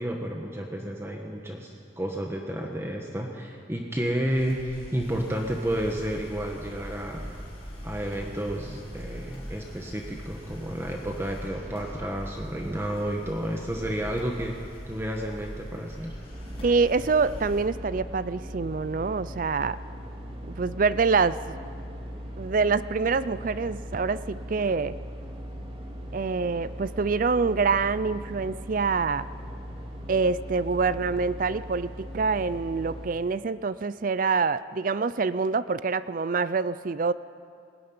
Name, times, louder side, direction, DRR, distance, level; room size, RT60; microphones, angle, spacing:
voice 1, 0.0-7.3 7.8-14.6 14.9-16.1, right 1 dB, 15° right, 1 dB, 1.3 m, -31 dB
sound 1, 4.2-17.6, equal, 30° left, 6.0 m, -42 dB
sound 2, 16.3-33.1, equal, 30° right, 2.4 m, -39 dB
voice 2, 16.6-19.8 20.5-21.6 22.4-25.0 26.1-29.3 30.1-37.1, right 4 dB, 45° right, 16 dB, 0.4 m, -26 dB
20.0 x 17.5 x 9.6 m, 2.4 s
head